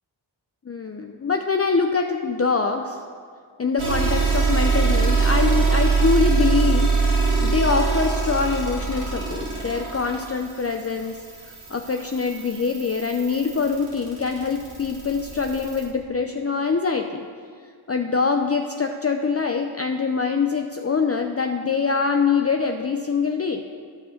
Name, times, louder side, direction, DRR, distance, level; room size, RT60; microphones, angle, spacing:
voice 1, 0.7-3.0 3.6-6.9 7.4-11.2 11.7-17.2 17.9-23.6, left 5 dB, 30° left, 4 dB, 0.6 m, -24 dB
sound 1, 3.8-15.8, right 4 dB, 85° right, 2.1 m, -23 dB
12.0 x 5.4 x 6.5 m, 2.1 s
cardioid pair, 50°, 48 cm